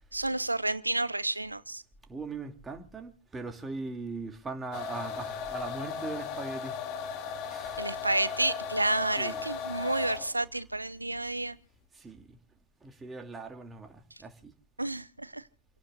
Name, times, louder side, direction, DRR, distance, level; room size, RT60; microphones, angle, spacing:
voice 1, 0.1-1.8 7.8-11.6 14.8-15.4, right 2 dB, 85° right, 0.8 m, -30 dB
voice 2, 2.1-6.8 7.4-7.9 9.1-9.4 11.9-12.4 12.8-14.5, right 3 dB, 15° right, 2.5 m, -40 dB
sound 1, 4.7-10.4, left 6 dB, 40° left, 2.5 m, -37 dB
29.5 x 17.5 x 2.4 m
figure-of-eight pair, 90°, 0 cm